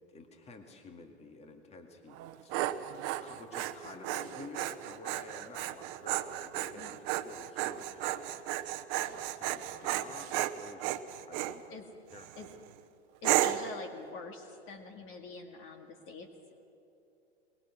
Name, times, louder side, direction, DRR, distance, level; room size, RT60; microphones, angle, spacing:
voice 1, 0.1-2.2 2.4-8.3 8.9-11.6 12.1-12.6, left 3 dB, 20° left, 4 dB, 2.2 m, -50 dB
Dog, 2.1-11.6 12.1-12.5 13.2-13.7, right 14 dB, 40° right, 1.0 m, -34 dB
voice 2, 13.2-16.3, left 4 dB, 35° left, 5 dB, 2.1 m, -45 dB
23.5 x 21.5 x 6.2 m, 2.9 s
hypercardioid pair, 110°, 34 cm